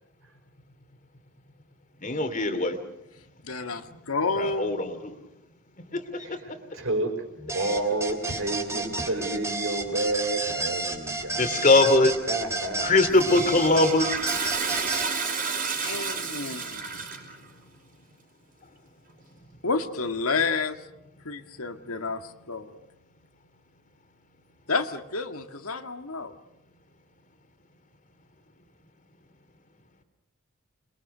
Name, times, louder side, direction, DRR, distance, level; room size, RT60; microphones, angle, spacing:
voice 1, 2.0-2.8 4.4-5.1 5.9-6.6 11.4-12.1 12.8-14.2 16.5-16.6, left 2 dB, 35° left, 8 dB, 2.7 m, -22 dB
voice 2, 3.4-4.8 15.7-17.0 19.6-20.8 21.2-22.8 24.7-26.3, left 4 dB, 80° left, 7 dB, 1.8 m, -30 dB
voice 3, 6.7-11.7 12.3-12.9, right 2 dB, 65° right, 5 dB, 5.5 m, -30 dB
sound 1, 7.5-15.1, right 3 dB, 15° right, 3.0 m, -31 dB
Toilet flush, 13.1-17.4, right 5 dB, 40° right, 5.3 m, -31 dB
28.0 x 22.0 x 6.7 m, 0.89 s
head